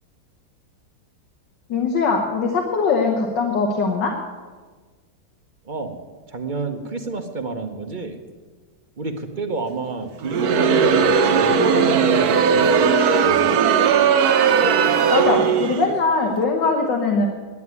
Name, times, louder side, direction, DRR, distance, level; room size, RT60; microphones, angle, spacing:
voice 1, 1.7-4.1 15.1-17.3, left 4 dB, 90° left, 0 dB, 1.9 m, -21 dB
voice 2, 5.6-6.0 6.3-8.2 9.0-12.9 13.2-13.6, right 3 dB, 40° right, 6 dB, 0.8 m, -29 dB
Crowd, 10.2-15.9, right 6 dB, 65° right, 1.2 m, -17 dB
11.0 x 9.4 x 9.5 m, 1.4 s
omnidirectional pair, 1.9 m